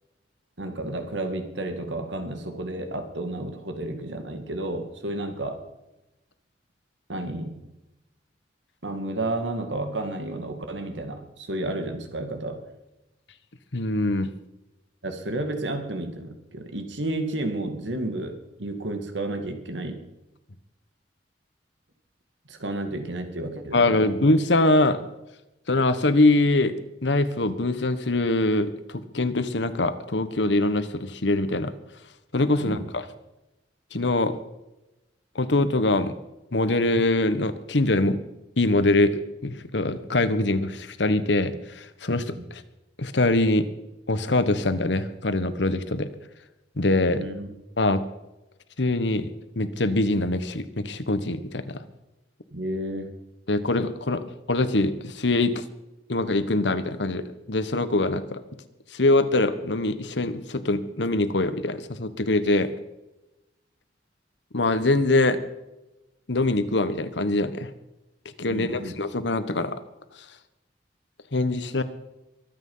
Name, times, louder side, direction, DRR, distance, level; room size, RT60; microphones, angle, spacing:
voice 1, 0.6-5.6 7.1-7.7 8.8-12.6 15.0-20.0 22.5-24.2 32.6-32.8 42.3-42.5 47.1-47.5 52.5-53.2 68.5-68.9, right 1 dB, 90° right, 6 dB, 2.2 m, -31 dB
voice 2, 13.7-14.3 23.7-25.0 25.7-26.7 27.0-31.7 32.3-33.1 33.9-34.3 35.3-36.1 36.5-38.2 38.6-42.6 43.0-43.7 44.1-46.1 46.8-47.2 47.8-48.0 48.8-49.3 49.6-51.8 53.5-55.6 56.1-58.4 58.9-62.7 64.5-65.4 66.3-67.7 68.4-69.8 71.3-71.8, left 2 dB, 75° left, 12 dB, 1.3 m, -23 dB
23.0 x 9.0 x 5.7 m, 0.96 s
head